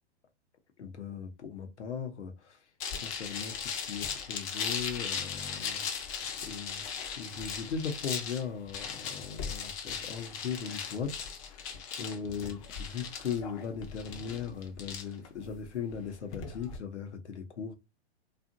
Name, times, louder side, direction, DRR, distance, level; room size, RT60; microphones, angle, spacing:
voice 1, 0.8-2.6 3.0-5.9 6.4-17.7, left 6 dB, 85° left, 0.8 m, -38 dB
sound 1, 2.8-16.8, left 6 dB, 30° left, 0.5 m, -38 dB
2.7 x 2.4 x 2.5 m
hypercardioid pair, 125°, 33 cm